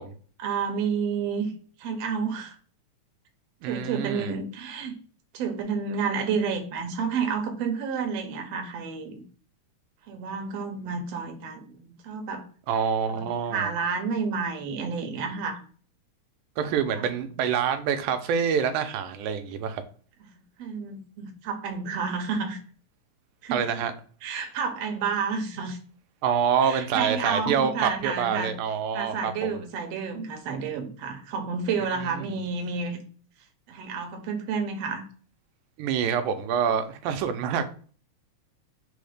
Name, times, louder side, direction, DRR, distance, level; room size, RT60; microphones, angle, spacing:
voice 1, 0.4-1.5 1.8-2.6 3.6-4.9 5.3-9.2 10.1-12.4 13.1-13.2 13.5-15.6 16.9-17.1 20.6-22.6 23.4-23.6 24.2-25.8 26.6-28.5 28.9-33.0 33.7-35.0, right 5 dB, 70° right, 4 dB, 1.6 m, -30 dB
voice 2, 3.6-4.4 12.7-13.7 16.6-19.8 23.5-23.9 26.2-29.5 32.0-32.3 35.8-37.8, right 7 dB, 85° right, 8 dB, 2.1 m, -26 dB
5.1 x 2.1 x 4.8 m, 0.43 s
omnidirectional pair, 3.5 m